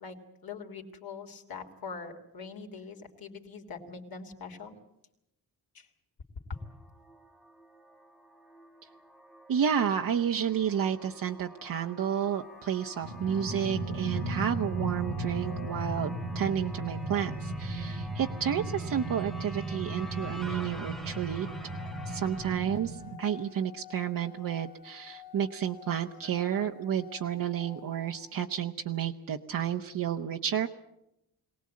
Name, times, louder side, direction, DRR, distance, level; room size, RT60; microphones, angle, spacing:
voice 1, 0.0-4.8 5.7-5.9, left 5 dB, 65° left, 2 dB, 3.1 m, -43 dB
sound 1, 6.5-22.6, equal, ahead, 1.0 m, -48 dB
voice 2, 9.5-21.5 22.1-30.7, right 8 dB, 60° right, 3 dB, 1.0 m, -31 dB
sound 2, 12.3-28.3, left 11 dB, 85° left, 2.6 m, -52 dB
sound 3, 13.0-23.2, right 2 dB, 75° right, 1.6 m, -36 dB
23.0 x 18.5 x 8.6 m, 0.84 s
wide cardioid pair, 130°, 38 cm